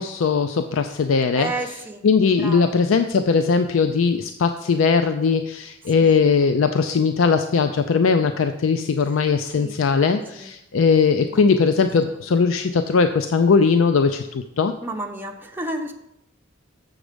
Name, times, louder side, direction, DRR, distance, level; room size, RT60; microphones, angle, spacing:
voice 1, 0.0-14.7, left 5 dB, 85° left, 8 dB, 0.4 m, -19 dB
voice 2, 1.4-2.0 2.4-2.7 6.0-6.2 9.5-9.8 10.3-10.5 14.8-15.9, right 2 dB, 10° right, 1 dB, 0.8 m, -31 dB
7.1 x 6.5 x 5.0 m, 0.82 s
head